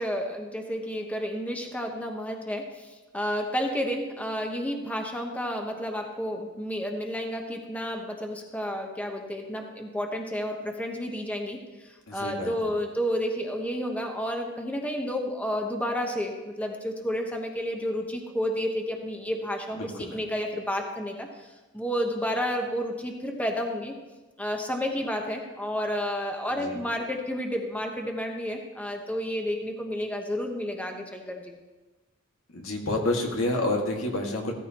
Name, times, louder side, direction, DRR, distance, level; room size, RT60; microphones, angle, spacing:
voice 1, 0.0-21.5 21.7-23.9 24.4-31.6, equal, 5° left, 2 dB, 1.1 m, -31 dB
voice 2, 12.1-12.7 19.7-20.2 26.6-26.8 32.5-34.5, left 2 dB, 75° left, 0 dB, 2.0 m, -29 dB
15.5 x 14.0 x 3.0 m, 1.2 s
head